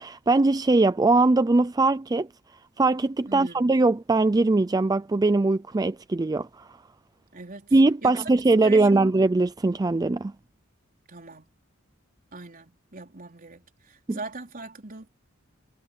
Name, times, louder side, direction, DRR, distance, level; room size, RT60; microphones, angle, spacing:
voice 1, 0.0-2.3 2.8-6.7 7.7-10.3 14.1-14.2, right 2 dB, 20° right, 0.4 m, -21 dB
voice 2, 3.3-3.7 7.3-7.8 8.0-8.3 8.6-9.1 11.1-11.5 12.3-15.1, right 3 dB, 45° right, 4.3 m, -40 dB
head